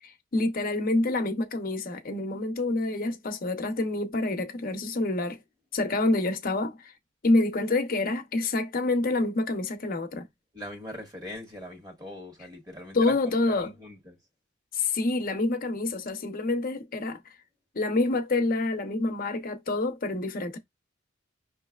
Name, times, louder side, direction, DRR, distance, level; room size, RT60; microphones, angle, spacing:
voice 1, 0.0-5.4 5.7-6.9 7.2-10.3 12.9-13.7 14.7-17.2 17.7-20.6, left 2 dB, 50° left, 0.8 m, -27 dB
voice 2, 10.5-14.2, equal, 20° right, 1.8 m, -41 dB
5.7 x 3.1 x 2.3 m
head